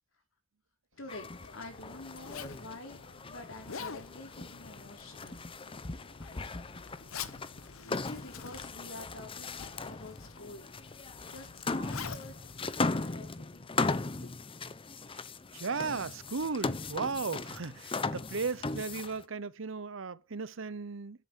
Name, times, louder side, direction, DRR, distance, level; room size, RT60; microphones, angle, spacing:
Zipper (clothing), 1.0-13.6, left 6 dB, 90° left, 1.0 m, -48 dB
voice 1, 1.0-5.4 7.8-10.7 11.3-12.4 12.8-14.3, left 2 dB, 70° left, 4.1 m, -48 dB
sound 1, 1.1-19.2, left 3 dB, 25° left, 0.7 m, -38 dB
voice 2, 15.5-21.3, right 4 dB, 65° right, 0.8 m, -36 dB
10.5 x 8.2 x 7.7 m
head